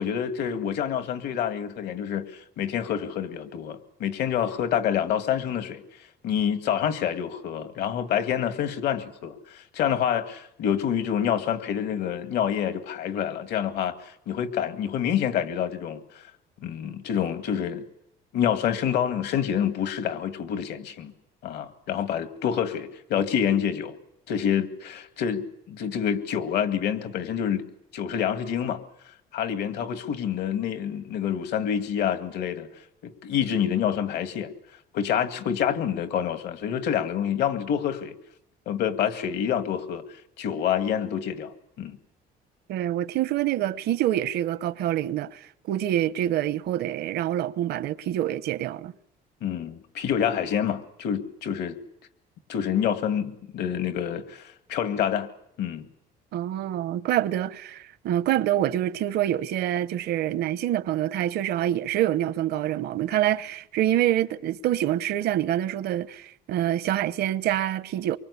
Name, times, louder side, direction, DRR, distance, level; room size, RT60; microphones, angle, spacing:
voice 1, 0.0-5.8 6.2-16.2 16.6-17.8 18.3-21.1 21.4-23.9 24.3-27.6 27.9-28.8 29.3-32.7 33.0-34.5 34.9-38.1 38.7-40.0 40.4-42.0 49.4-51.8 52.5-55.3 55.6-55.9, left 9 dB, 75° left, 2.3 m, -27 dB
voice 2, 42.7-48.9 56.3-68.2, right 12 dB, 75° right, 0.9 m, -26 dB
24.0 x 24.0 x 8.4 m
cardioid pair, 110°, 17 cm